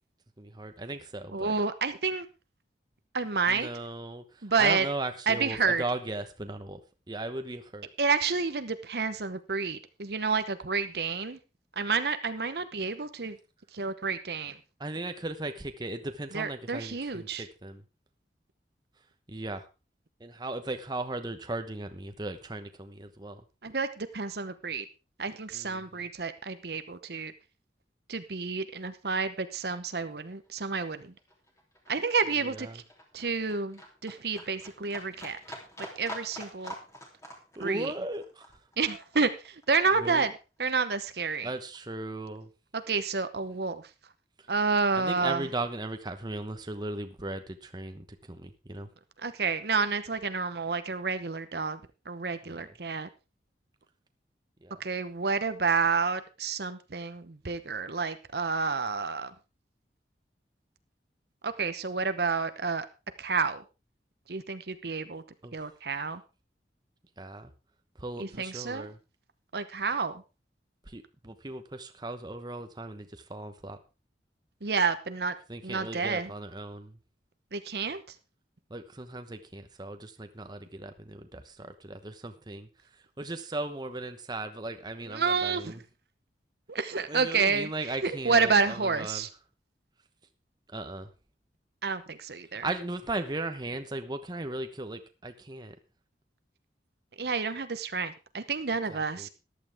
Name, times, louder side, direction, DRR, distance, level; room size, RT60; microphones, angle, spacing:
voice 1, 0.4-1.5 3.5-4.2 4.6-6.8 7.1-7.9 14.8-17.8 19.3-19.7 20.2-23.4 25.5-25.8 32.4-32.8 37.6-38.4 40.0-40.2 41.4-42.5 45.0-48.9 52.5-52.6 54.6-54.8 65.4-65.5 67.2-67.5 68.0-69.0 70.9-73.8 75.5-76.9 78.7-82.7 83.2-85.8 87.1-89.2 90.7-91.1 92.6-95.7 98.9-99.3, right 2 dB, 25° right, 7 dB, 1.0 m, -37 dB
voice 2, 1.3-2.3 3.1-3.7 4.4-4.9 5.3-5.8 8.0-11.4 11.8-13.4 13.7-14.6 16.3-17.5 23.6-24.8 25.2-27.3 28.1-31.1 31.9-32.8 33.1-35.4 36.0-36.7 37.6-37.9 38.8-40.3 40.6-41.5 42.7-43.8 44.5-45.5 49.2-51.8 52.1-53.1 54.8-59.3 61.4-62.9 63.2-63.6 64.3-65.2 65.5-66.2 68.2-68.9 69.5-70.1 74.6-75.3 75.6-76.3 77.5-78.0 85.1-85.7 86.7-87.7 88.0-89.3 91.8-92.7 97.2-99.3, right 4 dB, 60° right, 11 dB, 0.9 m, -29 dB
Livestock farm animals working animals, 29.4-40.4 40.8-41.8 42.1-42.2, equal, 20° left, 3.1 m, -46 dB
14.0 x 11.5 x 3.5 m, 0.30 s
head